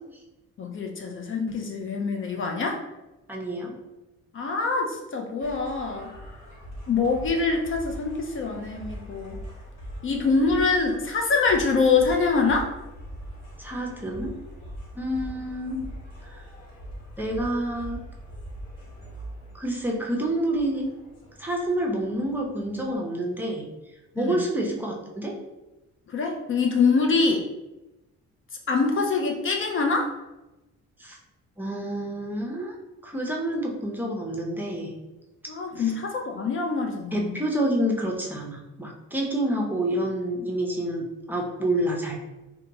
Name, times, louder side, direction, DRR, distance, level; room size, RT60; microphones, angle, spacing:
voice 1, 0.6-2.8 4.3-6.1 6.9-9.4 10.0-12.7 24.2-24.4 26.1-27.4 28.7-30.1 35.5-37.4, left 4 dB, 45° left, 2 dB, 0.4 m, -24 dB
voice 2, 3.3-3.7 13.6-14.3 14.9-15.9 17.2-18.0 19.5-20.9 21.4-23.7 24.2-25.3 31.0-31.2 31.6-32.8 33.0-35.0 37.1-42.2, right 1 dB, 5° right, -1 dB, 0.6 m, -28 dB
sound 1, 5.4-23.0, equal, 65° left, 1.1 m, -42 dB
2.7 x 2.2 x 2.7 m, 1.0 s
cardioid pair, 90°, 30 cm